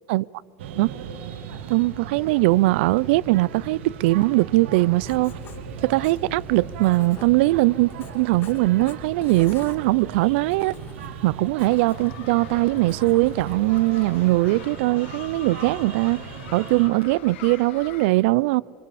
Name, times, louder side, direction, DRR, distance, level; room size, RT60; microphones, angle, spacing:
sound 1, 0.6-16.9, right 7 dB, 90° right, 2.0 m, -38 dB
voice 1, 1.7-5.4 5.8-10.7 11.2-16.2 16.5-18.6, right 20 dB, 75° right, 0.4 m, -21 dB
Writing, 5.0-14.6, left 6 dB, 35° left, 1.7 m, -44 dB
sound 2, 11.6-18.1, left 11 dB, 90° left, 1.5 m, -43 dB
28.0 x 25.5 x 4.2 m
supercardioid pair, 140°, 6 cm